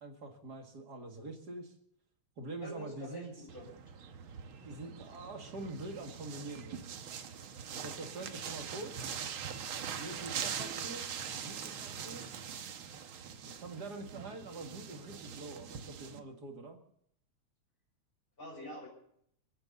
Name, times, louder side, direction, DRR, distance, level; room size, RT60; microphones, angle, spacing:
voice 1, 0.0-1.7 2.4-3.3 4.6-6.9 7.7-8.9 10.0-12.3 13.4-16.8, right 2 dB, 35° right, 3 dB, 2.3 m, -45 dB
voice 2, 2.6-3.7 18.4-18.9, left 1 dB, 15° left, 0 dB, 6.6 m, -46 dB
sound 1, 3.5-16.2, right 7 dB, 60° right, 1.5 m, -43 dB
30.0 x 10.0 x 4.1 m, 0.68 s
omnidirectional pair, 3.3 m